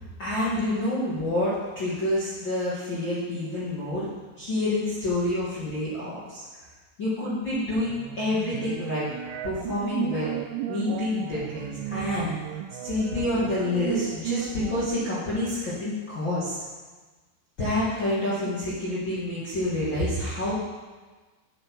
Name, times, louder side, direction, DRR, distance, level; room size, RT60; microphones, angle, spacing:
voice 1, 0.2-4.1 4.4-6.4 7.0-9.1 9.4-10.3 10.7-12.3 12.8-16.6 17.6-20.5, left 1 dB, 70° left, -11 dB, 1.1 m, -28 dB
sound 1, 7.7-14.9, right 11 dB, 90° right, 3.1 m, -34 dB
8.7 x 7.9 x 4.7 m, 1.3 s
omnidirectional pair, 5.5 m